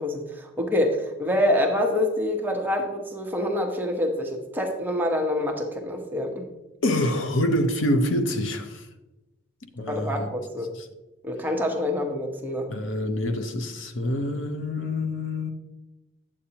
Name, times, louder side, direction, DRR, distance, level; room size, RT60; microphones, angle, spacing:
voice 1, 0.0-6.5 9.9-10.7 11.2-12.7, left 1 dB, 10° right, 0.9 m, -26 dB
voice 2, 6.8-8.9 9.8-10.3 10.8-10.9 12.7-15.5, left 1 dB, 65° left, 0.7 m, -26 dB
8.7 x 8.4 x 2.9 m
head